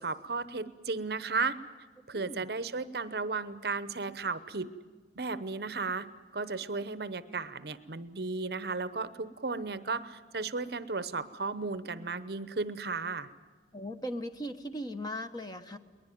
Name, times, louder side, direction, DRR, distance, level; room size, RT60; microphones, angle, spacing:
voice 1, 0.0-1.6 2.1-4.7 5.2-6.1 6.3-13.3, right 4 dB, 55° right, 14 dB, 0.8 m, -34 dB
voice 2, 2.1-2.4 13.7-15.8, equal, 20° left, 8 dB, 1.1 m, -38 dB
21.5 x 20.0 x 9.3 m, 1.5 s
head